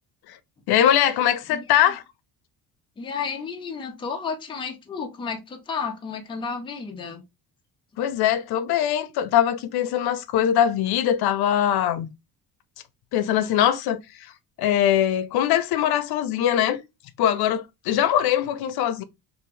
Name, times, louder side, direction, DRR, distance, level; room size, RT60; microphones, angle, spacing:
voice 1, 0.7-2.0 8.0-12.1 13.1-14.3 14.6-16.8 17.2-19.0, left 10 dB, 85° left, 0.5 m, -22 dB
voice 2, 1.5-1.9 3.0-7.2, left 5 dB, 15° left, 0.4 m, -32 dB
2.7 x 2.5 x 3.1 m
cardioid pair, 175°, 37 cm